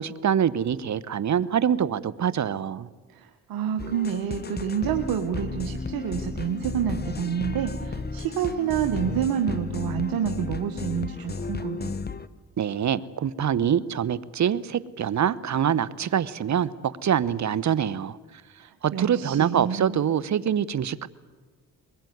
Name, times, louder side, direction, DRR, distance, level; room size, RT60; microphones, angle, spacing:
voice 1, 0.0-2.9 12.6-18.2 18.8-21.1, right 9 dB, 55° right, 18 dB, 1.2 m, -25 dB
voice 2, 3.1-11.9 18.6-20.0, right 8 dB, 85° right, 6 dB, 1.6 m, -28 dB
sound 1, 3.8-12.3, left 4 dB, 30° left, 1.2 m, -34 dB
22.5 x 21.0 x 9.5 m, 1.3 s
supercardioid pair, 60°, 35 cm